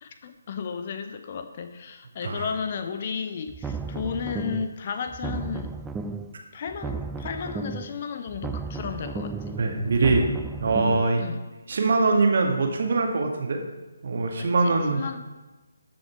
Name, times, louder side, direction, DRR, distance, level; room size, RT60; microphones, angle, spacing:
voice 1, 0.0-5.7 6.5-9.6 11.2-11.4 14.4-15.2, left 6 dB, 35° left, 8 dB, 0.8 m, -33 dB
sound 1, 3.5-4.8 5.1-6.4 6.7-8.0 8.3-11.1, right 4 dB, 5° right, 0.3 m, -34 dB
voice 2, 9.6-10.3 10.6-11.2 11.7-13.6 14.0-15.2, right 3 dB, 45° right, 2 dB, 1.8 m, -23 dB
13.5 x 6.4 x 4.5 m, 1.2 s
figure-of-eight pair, 145°, 0 cm